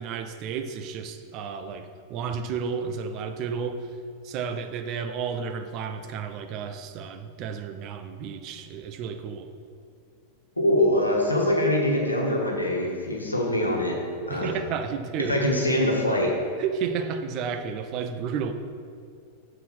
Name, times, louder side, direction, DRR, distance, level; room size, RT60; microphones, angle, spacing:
voice 1, 0.0-3.9 4.2-9.5 14.3-15.4 16.6-18.5, right 6 dB, 40° right, 8 dB, 0.6 m, -32 dB
voice 2, 10.6-14.0 14.3-14.5 15.3-16.4, left 1 dB, 85° left, 0 dB, 1.3 m, -23 dB
7.1 x 4.5 x 6.0 m, 2.3 s
figure-of-eight pair, 90°, 0 cm